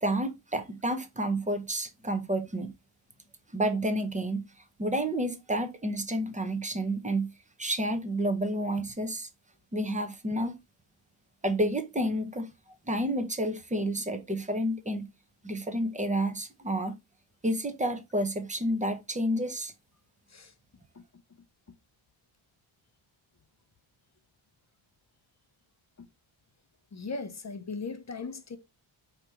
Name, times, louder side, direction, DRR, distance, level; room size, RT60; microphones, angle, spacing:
voice 1, 0.0-2.7 3.5-4.4 4.8-7.3 7.6-9.3 9.7-10.6 11.4-12.5 12.9-15.1 15.4-16.9 17.4-19.7, right 1 dB, 15° right, 0.7 m, -30 dB
voice 2, 26.9-28.6, left 4 dB, 35° left, 0.6 m, -37 dB
4.9 x 3.0 x 3.3 m
wide cardioid pair, 120°, 49 cm